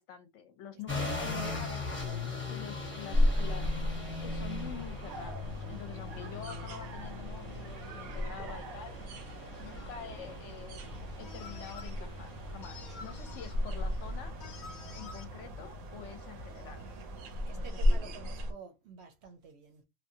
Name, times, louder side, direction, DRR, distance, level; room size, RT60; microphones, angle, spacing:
voice 1, 0.0-2.1 2.5-3.7 4.0-9.2 9.6-10.8 11.2-14.3 14.9-16.9 17.6-18.2, left 8 dB, 70° left, 0.8 m, -47 dB
voice 2, 0.7-1.6 2.2-2.5 2.9-3.0 17.5-19.8, right 6 dB, 60° right, 0.8 m, -51 dB
sound 1, 0.9-17.4, left 3 dB, 10° left, 0.9 m, -42 dB
sound 2, 3.1-18.5, left 1 dB, 85° right, 1.1 m, -35 dB
sound 3, 9.6-10.0 11.2-11.9 12.6-13.6 14.4-15.2, left 5 dB, 85° left, 0.4 m, -49 dB
2.9 x 2.2 x 2.6 m
omnidirectional pair, 1.4 m